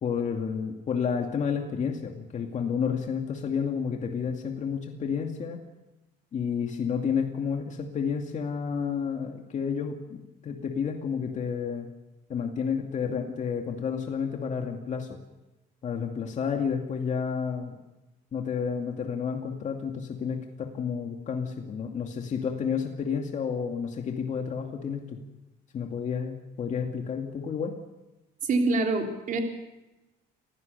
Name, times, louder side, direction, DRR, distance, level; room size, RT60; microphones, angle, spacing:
voice 1, 0.0-5.6 6.3-11.9 12.3-15.2 15.8-17.8 18.3-25.2 25.7-27.7, left 6 dB, 45° left, 3 dB, 2.3 m, -30 dB
voice 2, 28.4-29.4, right 3 dB, 50° right, 3 dB, 3.6 m, -25 dB
27.5 x 16.0 x 6.9 m, 1.0 s
cardioid pair, 110°, 17 cm